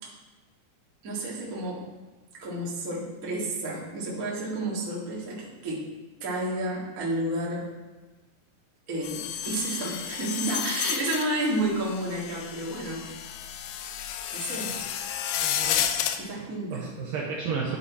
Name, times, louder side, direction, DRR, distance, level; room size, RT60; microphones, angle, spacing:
voice 1, 1.0-1.9 2.4-5.9 6.2-7.7 8.9-13.0 14.3-14.9 16.2-16.9, right 1 dB, 35° right, -5 dB, 1.5 m, -31 dB
sound 1, 9.0-16.2, left 9 dB, 80° left, 2.4 m, -31 dB
voice 2, 15.4-17.8, right 5 dB, 70° right, -2 dB, 2.3 m, -34 dB
10.5 x 8.7 x 4.2 m, 1.2 s
omnidirectional pair, 5.0 m